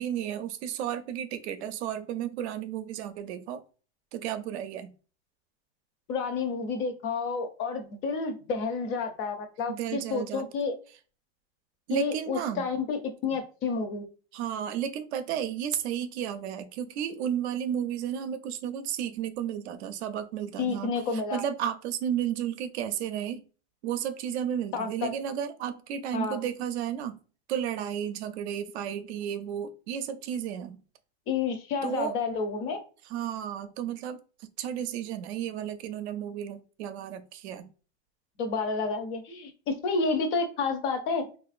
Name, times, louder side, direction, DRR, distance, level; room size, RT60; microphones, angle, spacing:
voice 1, 0.0-3.6 4.1-4.9 9.7-10.5 11.9-12.6 13.3-13.4 14.3-23.4 23.8-27.2 27.5-30.8 31.8-32.2 33.1-34.2 34.6-37.7, right 9 dB, 70° right, 0.5 m, -33 dB
voice 2, 6.1-10.7 11.9-14.1 20.6-21.4 24.7-25.1 26.1-26.4 31.3-32.8 38.4-41.3, left 4 dB, 35° left, 0.5 m, -30 dB
3.1 x 2.4 x 2.4 m
supercardioid pair, 160°, 34 cm